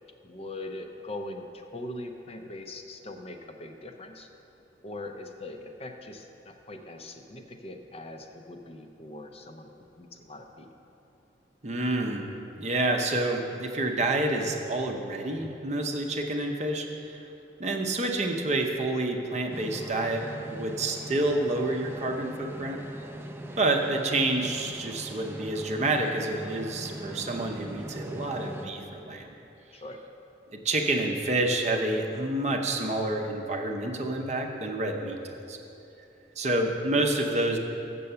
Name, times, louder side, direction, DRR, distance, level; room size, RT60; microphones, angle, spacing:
voice 1, 0.2-4.3 4.8-9.7 10.0-10.7 23.2-23.5 29.7-30.0, left 2 dB, 35° left, 4 dB, 0.6 m, -41 dB
voice 2, 11.6-12.3 12.6-17.3 17.6-22.8 23.6-29.3 30.6-35.6 36.4-37.6, right 2 dB, 40° right, 2 dB, 0.7 m, -28 dB
sound 1, 19.5-28.7, right 1 dB, 15° right, 0.4 m, -41 dB
7.6 x 6.9 x 6.8 m, 2.8 s
head